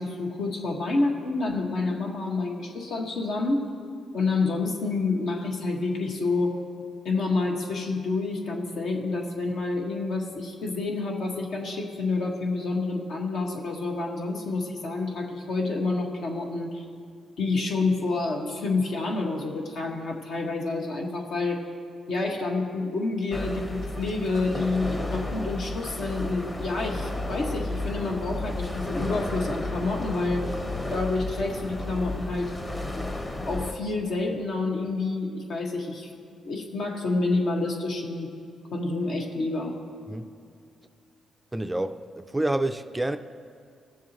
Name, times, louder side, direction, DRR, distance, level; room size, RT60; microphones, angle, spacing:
voice 1, 0.0-3.7 4.1-6.6 7.0-16.8 17.4-21.7 22.1-30.5 30.9-32.5 33.4-36.1 36.4-38.3 38.7-39.8, left 3 dB, 70° left, 1.6 m, -28 dB
sound 1, 23.3-33.7, left 1 dB, 25° left, 1.2 m, -33 dB
voice 2, 41.5-43.2, right 1 dB, 10° right, 0.4 m, -28 dB
19.5 x 7.3 x 3.0 m
cardioid pair, 95°, 0 cm